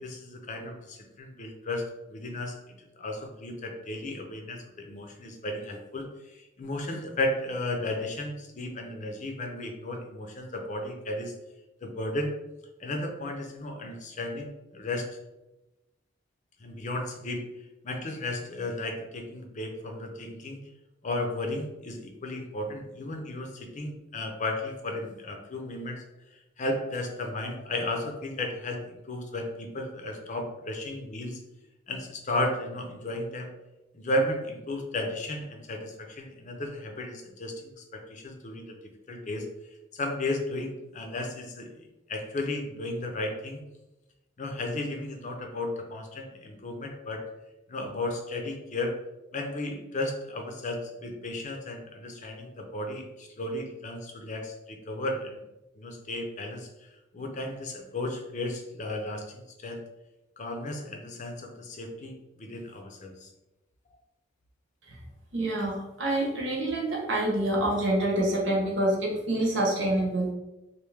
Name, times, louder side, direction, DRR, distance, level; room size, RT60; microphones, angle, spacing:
voice 1, 0.0-11.3 11.8-12.3 12.8-15.1 16.6-17.4 17.8-20.6 21.0-26.0 26.6-31.4 31.9-33.5 33.9-38.8 39.1-39.5 39.9-43.6 44.4-47.2 47.7-48.9 49.3-55.4 55.8-56.7 57.1-59.8 60.4-63.3, left 1 dB, 40° left, 3 dB, 0.5 m, -34 dB
voice 2, 65.3-70.3, right 1 dB, 75° right, -2 dB, 1.1 m, -27 dB
3.1 x 2.6 x 3.4 m, 0.97 s
head